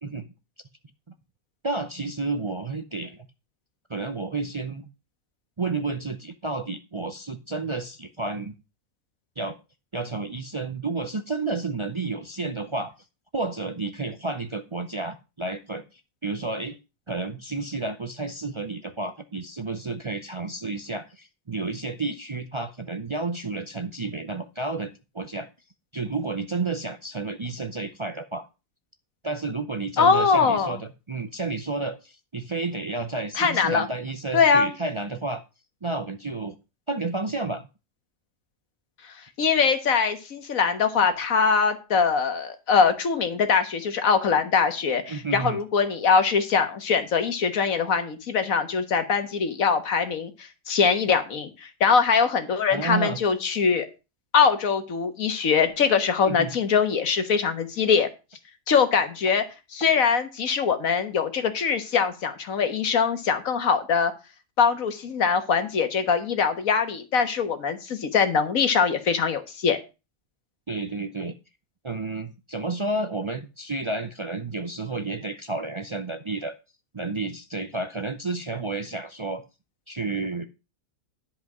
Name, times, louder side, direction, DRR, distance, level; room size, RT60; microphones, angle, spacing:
voice 1, 1.6-3.3 3.9-4.9 5.6-8.5 9.4-9.6 9.9-12.9 13.3-16.8 17.1-25.5 25.9-28.4 29.2-35.4 35.8-36.5 36.9-37.6 45.1-45.6 52.7-53.2 56.3-56.5 70.7-71.3 71.8-76.5 76.9-79.4 79.9-80.5, right 3 dB, 35° right, 8 dB, 0.5 m, -31 dB
voice 2, 30.0-30.8 33.4-33.9 34.3-34.7 39.4-53.9 54.3-58.1 58.7-59.4 59.7-64.1 64.6-69.8, left 6 dB, 90° left, 8 dB, 1.7 m, -22 dB
11.0 x 5.1 x 6.0 m, 0.29 s
omnidirectional pair, 1.4 m